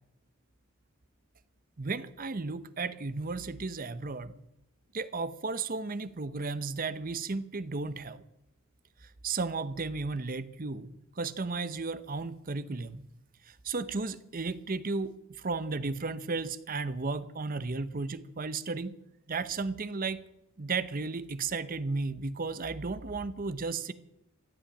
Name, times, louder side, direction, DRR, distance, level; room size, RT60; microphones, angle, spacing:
voice 1, 1.8-4.3 4.9-8.2 9.2-13.0 13.6-18.9 19.3-20.2 20.6-23.9, right 3 dB, 40° right, 14 dB, 0.8 m, -34 dB
15.5 x 8.9 x 8.8 m, 0.86 s
head